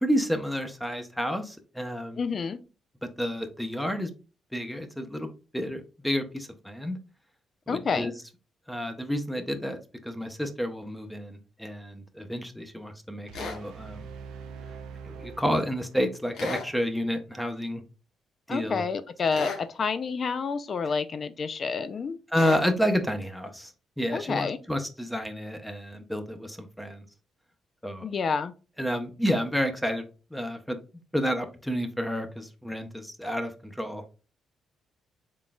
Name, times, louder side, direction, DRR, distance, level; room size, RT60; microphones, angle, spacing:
voice 1, 0.0-2.2 3.2-4.1 4.5-5.3 5.5-7.0 7.7-8.1 8.7-14.1 15.0-17.8 18.5-18.8 22.3-27.1 27.8-28.1 28.8-30.0 30.3-30.8 31.1-34.2, equal, 5° left, 0.7 m, -30 dB
voice 2, 2.2-2.6 7.7-8.1 18.5-22.2 24.1-24.6 28.0-28.5, left 5 dB, 45° left, 0.4 m, -29 dB
sound 1, 13.3-13.6 16.3-16.7 19.3-19.7 22.3-22.7, left 5 dB, 75° left, 1.2 m, -34 dB
sound 2, 13.3-16.3, right 6 dB, 90° right, 0.5 m, -43 dB
3.8 x 3.8 x 2.3 m
cardioid pair, 90°, 0 cm